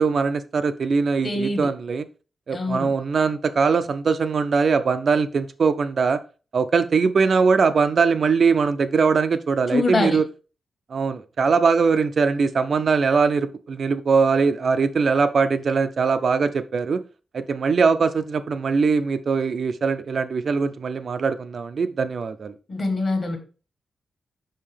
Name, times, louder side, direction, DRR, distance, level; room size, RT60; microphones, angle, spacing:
voice 1, 0.0-2.0 2.5-6.2 6.5-10.2 10.9-17.0 17.3-22.5, right 5 dB, 45° right, 10 dB, 0.4 m, -21 dB
voice 2, 1.2-1.7 2.5-2.9 9.7-10.2 22.7-23.4, left 3 dB, 35° left, 5 dB, 1.3 m, -24 dB
5.5 x 5.3 x 3.3 m, 0.34 s
wide cardioid pair, 160°, 0 cm